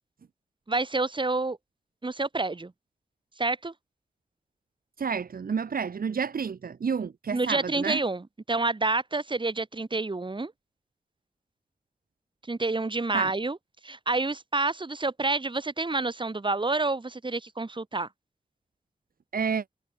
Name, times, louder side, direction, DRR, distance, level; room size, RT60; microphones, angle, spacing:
voice 1, 0.7-1.6 2.0-2.7 3.4-3.7 7.3-10.5 12.5-13.6 13.8-18.1, right 3 dB, 35° right, 3.5 m, -28 dB
voice 2, 5.0-8.0 13.1-13.3 19.3-19.6, right 6 dB, 75° right, 2.0 m, -30 dB
wide cardioid pair, 75°, 15 cm